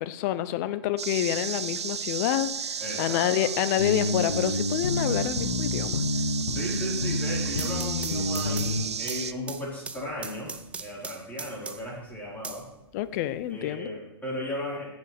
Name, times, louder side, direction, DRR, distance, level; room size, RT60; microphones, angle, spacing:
voice 1, 0.0-6.0 12.9-13.9, left 13 dB, 40° left, 14 dB, 0.7 m, -28 dB
sound 1, 1.0-9.3, right 7 dB, 85° right, 0.5 m, -33 dB
voice 2, 2.8-3.5 6.5-10.5 10.8-12.7 13.5-14.9, equal, 10° left, -6 dB, 4.7 m, -36 dB
sound 2, 3.8-8.9, left 2 dB, 90° left, 1.4 m, -29 dB
sound 3, 7.6-12.0 12.4-13.4, right 4 dB, 10° right, 0.5 m, -40 dB
15.5 x 8.1 x 3.5 m, 0.97 s
hypercardioid pair, 125°, 14 cm